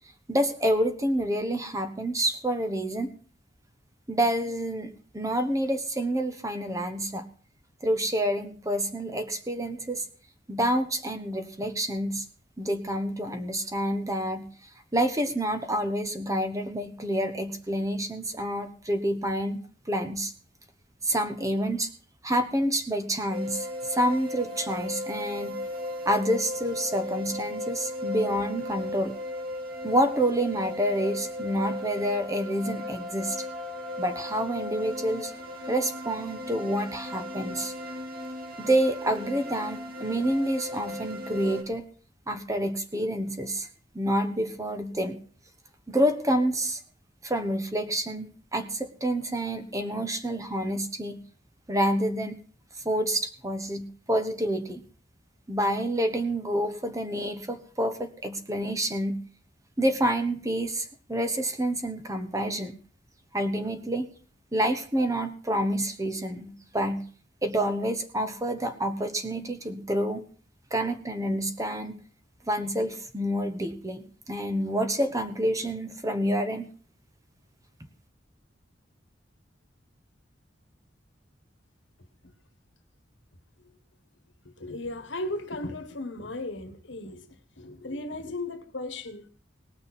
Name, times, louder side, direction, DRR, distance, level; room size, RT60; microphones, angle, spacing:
voice 1, 0.3-3.1 4.1-7.3 7.8-10.0 10.5-12.2 12.6-14.5 14.9-19.6 19.9-20.3 21.0-21.9 22.2-25.6 26.0-29.1 29.8-33.4 34.0-35.3 35.7-37.7 38.6-41.8 42.3-43.7 43.9-45.2 45.9-46.8 47.2-51.2 51.7-52.4 52.8-54.8 55.5-59.2 59.8-62.8 63.3-64.1 64.5-67.0 67.4-70.2 70.7-72.0 72.5-76.7, right 1 dB, 20° right, 1.2 m, -28 dB
sound 1, 23.3-41.6, left 1 dB, 50° right, 1.7 m, -36 dB
voice 2, 84.4-87.3 87.6-89.3, left 2 dB, 85° left, 1.5 m, -36 dB
19.0 x 6.4 x 6.1 m
head